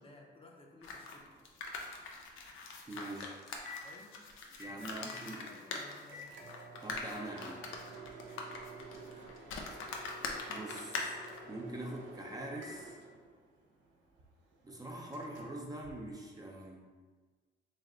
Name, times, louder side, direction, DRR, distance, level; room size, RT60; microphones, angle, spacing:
voice 1, 0.0-1.3 3.8-4.2 4.6-6.4 8.7-9.7, left 2 dB, 25° left, -1 dB, 0.7 m, -57 dB
sound 1, 0.8-11.4, left 3 dB, 85° left, 0.6 m, -43 dB
Microwave oven, 1.0-16.7, right 1 dB, 70° right, 0.8 m, -52 dB
voice 2, 2.9-3.4 4.6-5.5 6.8-7.7 10.5-11.2 11.5-13.0 14.6-16.9, right 1 dB, 20° right, -1 dB, 0.6 m, -44 dB
3.3 x 3.1 x 3.7 m, 1.4 s
cardioid pair, 90°, 20 cm